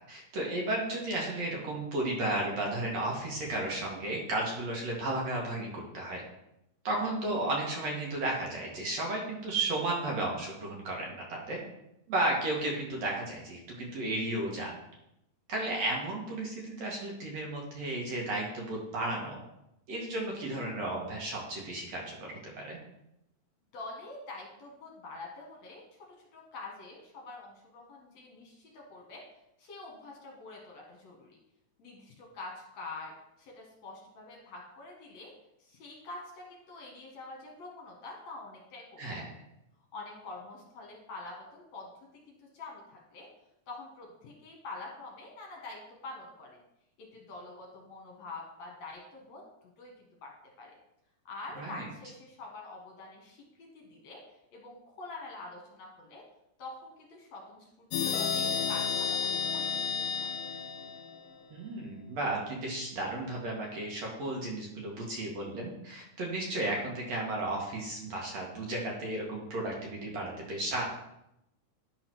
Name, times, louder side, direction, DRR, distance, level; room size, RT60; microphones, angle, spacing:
voice 1, 0.0-6.2 6.8-11.6 12.1-14.7 15.5-19.4 19.9-22.8 39.0-39.3 51.6-51.9 61.5-70.8, right 2 dB, 60° right, -2 dB, 2.4 m, -33 dB
voice 2, 23.7-25.8 26.3-29.2 29.6-31.4 31.8-33.1 33.4-35.3 35.6-39.1 39.9-41.9 42.3-43.3 43.7-46.6 47.1-49.4 49.8-49.9 50.2-50.3 50.6-50.7 51.3-54.2 54.5-56.2 56.6-60.3, left 3 dB, 60° left, -1 dB, 2.4 m, -46 dB
sound 1, 57.9-61.5, left 6 dB, 75° left, 2.2 m, -32 dB
10.5 x 3.9 x 6.0 m, 0.84 s
omnidirectional pair, 3.9 m